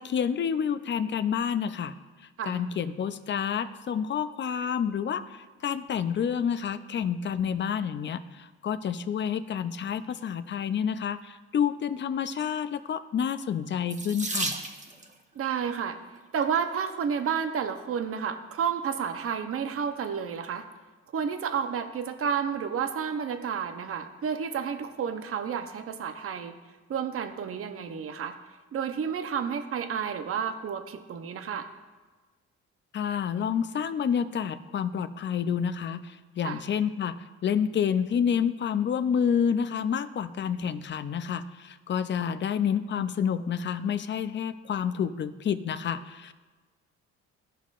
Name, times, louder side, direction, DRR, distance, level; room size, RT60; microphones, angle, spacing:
voice 1, 0.0-1.9 2.5-14.5 32.9-46.3, left 7 dB, 40° left, 13 dB, 0.5 m, -29 dB
Water tap faucet / Sink (filling or washing), 13.9-15.1 16.2-16.6 17.2-17.3 17.7-17.8, right 2 dB, 25° right, 1.0 m, -33 dB
voice 2, 15.3-16.0 16.3-20.7 21.1-26.6 26.9-28.4 28.7-31.7 36.4-36.6, right 7 dB, 50° right, 8 dB, 0.7 m, -31 dB
14.0 x 5.6 x 2.5 m, 1.3 s
cardioid pair, 90°, 30 cm